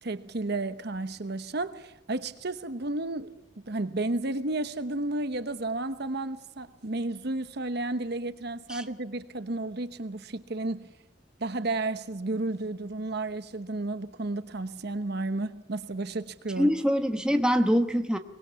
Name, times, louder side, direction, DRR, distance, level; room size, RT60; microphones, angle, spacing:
voice 1, 0.0-10.9 11.4-16.7, right 2 dB, 60° right, 1.0 m, -32 dB
voice 2, 16.6-18.2, equal, 5° right, 1.2 m, -24 dB
23.5 x 20.0 x 7.0 m
head